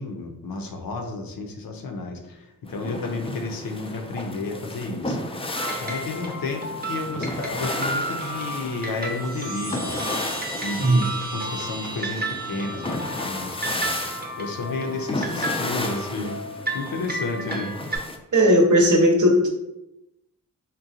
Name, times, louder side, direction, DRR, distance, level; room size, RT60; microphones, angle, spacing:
voice 1, 0.0-5.2 5.8-9.9 10.6-13.9 14.4-16.4 16.7-17.8, left 3 dB, 80° left, 4 dB, 0.6 m, -32 dB
sound 1, 2.7-18.2, left 2 dB, 15° left, 0.4 m, -33 dB
sound 2, 5.5-18.0, right 1 dB, 30° right, 0.6 m, -33 dB
Chime, 9.0-13.6, right 2 dB, 90° right, 1.0 m, -38 dB
voice 2, 10.8-11.1 18.3-19.5, equal, 60° right, 1 dB, 0.8 m, -17 dB
3.7 x 2.1 x 2.7 m, 0.91 s
cardioid pair, 45°, 34 cm